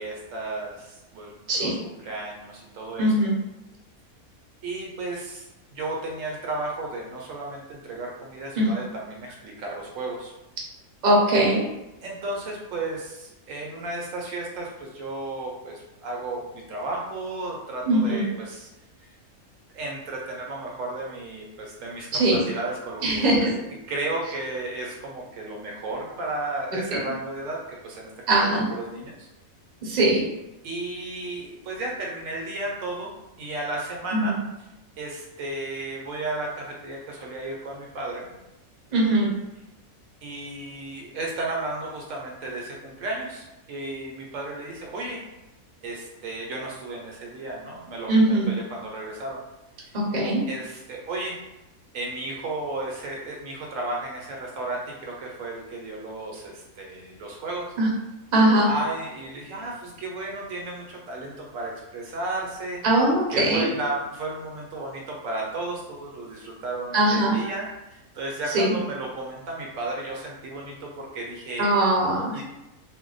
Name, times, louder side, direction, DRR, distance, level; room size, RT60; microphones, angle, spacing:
voice 1, 0.0-3.1 4.6-10.3 12.0-18.7 19.0-19.1 19.7-23.3 23.9-28.1 28.4-29.3 30.6-33.1 33.4-34.3 35.0-38.3 40.2-45.2 45.8-49.4 50.5-51.4 51.9-57.7 58.7-62.8 63.3-71.8 72.3-72.4, right 2 dB, 70° right, -1 dB, 0.9 m, -33 dB
voice 2, 3.0-3.3 8.6-8.7 11.0-11.6 17.8-18.2 22.1-22.4 23.0-23.5 26.9-27.0 28.3-28.7 29.8-30.2 34.1-34.3 38.9-39.3 48.1-48.5 49.9-50.4 57.8-57.9 58.3-58.7 62.8-63.7 66.9-67.4 68.5-68.7 71.6-72.3, right 1 dB, 40° right, -4 dB, 0.7 m, -20 dB
2.6 x 2.1 x 3.8 m, 0.95 s
omnidirectional pair, 1.5 m